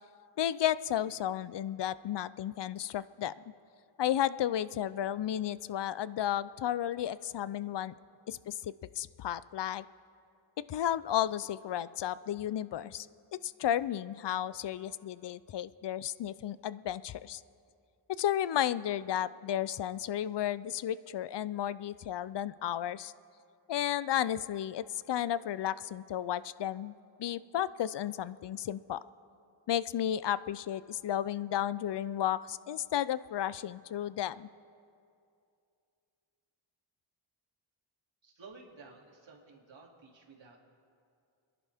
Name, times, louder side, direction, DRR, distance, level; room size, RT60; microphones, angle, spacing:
voice 1, 0.4-3.3 4.0-7.9 8.3-9.8 10.7-13.1 13.3-17.4 18.2-23.1 23.7-29.0 29.7-34.5, left 11 dB, 60° left, 17 dB, 0.5 m, -33 dB
voice 2, 38.2-40.6, right 4 dB, 70° right, -2 dB, 2.7 m, -53 dB
29.5 x 11.0 x 3.5 m, 2.5 s
wide cardioid pair, 75°, 47 cm